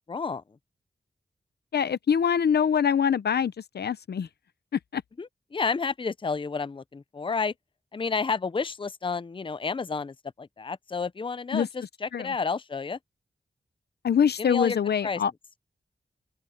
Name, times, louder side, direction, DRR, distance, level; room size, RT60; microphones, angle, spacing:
voice 1, 0.1-0.4 5.2-7.5 7.9-13.0 14.4-14.8 15.0-15.2, left 5 dB, 30° left, 0.6 m, -30 dB
voice 2, 1.7-4.3 4.9-5.0 11.5-11.7 12.1-12.3 14.0-15.3, left 7 dB, 80° left, 0.7 m, -24 dB
open air
wide cardioid pair, 65°, 17 cm